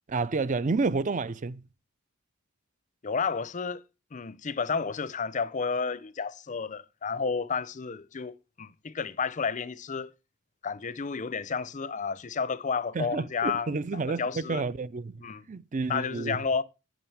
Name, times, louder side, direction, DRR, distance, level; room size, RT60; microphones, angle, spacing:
voice 1, 0.1-1.6 12.9-15.2 15.5-16.4, right 4 dB, 35° right, 0.5 m, -30 dB
voice 2, 3.0-3.8 4.1-10.1 10.6-14.6 15.2-15.5 15.9-16.6, left 5 dB, 35° left, 0.5 m, -31 dB
9.0 x 6.7 x 7.1 m
head